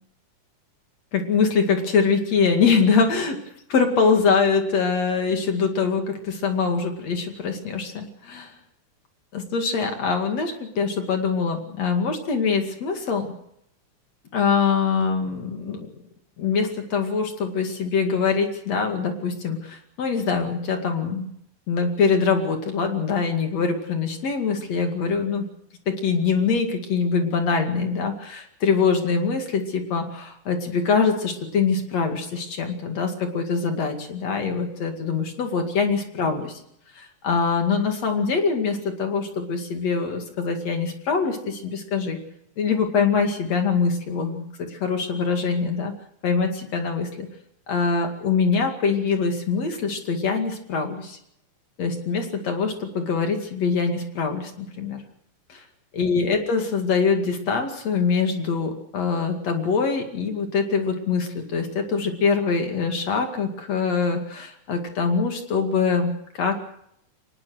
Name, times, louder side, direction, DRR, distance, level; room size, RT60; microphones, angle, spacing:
voice 1, 1.1-3.4 3.7-8.5 9.3-13.3 14.3-15.9 16.4-21.3 21.7-25.5 25.9-36.5 36.9-42.2 42.6-45.9 46.2-47.3 47.7-51.2 51.8-55.0 55.5-55.6 55.9-66.6, left 5 dB, 55° left, 5 dB, 3.4 m, -23 dB
24.0 x 20.0 x 6.4 m, 0.74 s
omnidirectional pair, 3.6 m